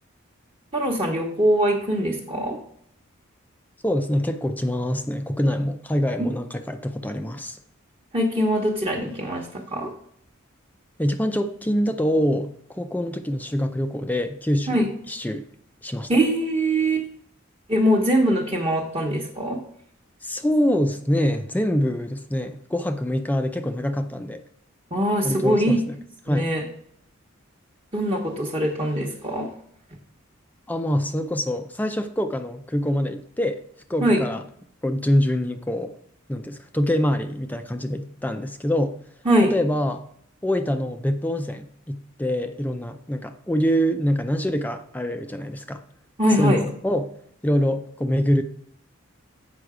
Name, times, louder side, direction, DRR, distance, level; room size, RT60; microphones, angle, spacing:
voice 1, 0.7-2.6 6.2-6.3 8.1-9.9 14.7-14.9 16.1-17.1 17.7-19.6 24.9-25.8 26.3-26.6 27.9-29.5 34.0-34.2 39.2-39.5 46.2-46.6, right 1 dB, 25° right, -2 dB, 1.0 m, -22 dB
voice 2, 3.8-7.6 11.0-15.4 15.8-16.1 20.2-24.4 25.2-26.0 26.3-26.5 30.7-33.6 33.9-34.4 34.8-35.9 36.3-38.9 39.5-40.0 40.4-45.8 46.3-47.1 47.4-48.4, equal, 10° left, 8 dB, 0.4 m, -25 dB
7.9 x 5.6 x 4.9 m, 0.67 s
head